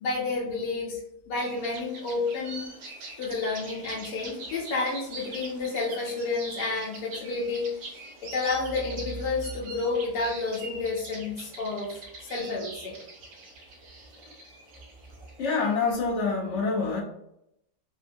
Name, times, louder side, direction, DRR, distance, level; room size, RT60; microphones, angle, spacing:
voice 1, 0.0-1.0 1.3-2.7 3.2-12.9, left 3 dB, 85° left, -3 dB, 1.3 m, -30 dB
sound 1, 1.4-15.9, right 2 dB, 75° right, 1.4 m, -44 dB
voice 2, 15.4-17.0, left 4 dB, 70° left, -2 dB, 0.7 m, -26 dB
3.4 x 2.1 x 2.6 m, 0.78 s
omnidirectional pair, 1.8 m